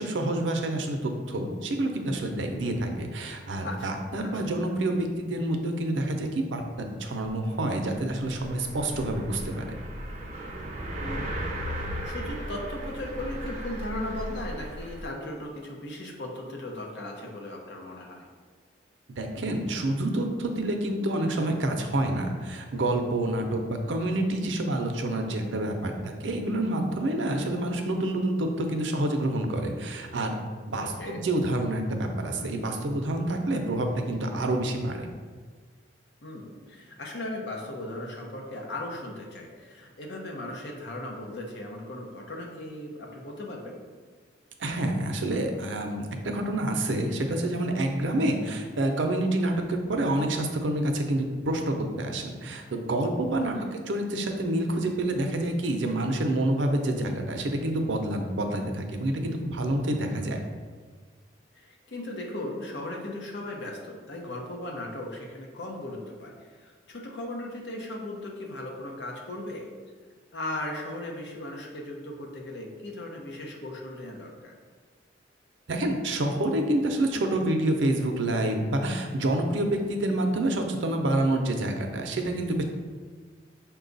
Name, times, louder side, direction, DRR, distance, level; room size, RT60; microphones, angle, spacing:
voice 1, 0.0-9.8 19.2-30.4 30.7-35.1 44.6-53.6 53.9-60.4 75.7-82.6, right 1 dB, 85° right, 4 dB, 0.6 m, -28 dB
sound 1, 7.3-7.4 7.5-15.1, equal, 40° right, 0.6 m, -36 dB
voice 2, 11.0-11.4 11.7-18.3 23.8-24.1 30.8-31.2 36.2-43.8 53.4-53.7 61.5-69.7 70.3-74.5, left 1 dB, 65° left, 0 dB, 0.8 m, -37 dB
5.8 x 2.3 x 3.9 m, 1.5 s
head